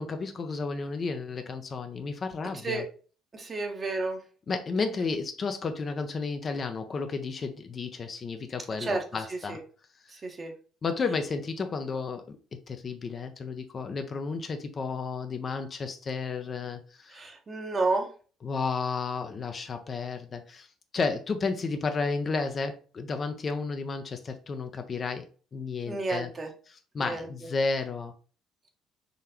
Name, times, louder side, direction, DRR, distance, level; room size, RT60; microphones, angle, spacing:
voice 1, 0.0-2.8 4.5-9.6 10.8-12.4 12.7-17.2 18.4-20.7 20.9-25.3 25.5-26.3 26.7-28.1, left 4 dB, 40° left, 0.6 m, -32 dB
voice 2, 3.3-4.2 8.8-9.0 9.3-9.6 10.1-10.5 17.1-18.1 25.8-26.5 27.0-27.3, right 3 dB, 35° right, 1.0 m, -31 dB
3.9 x 3.2 x 2.8 m
hypercardioid pair, 55°, 0 cm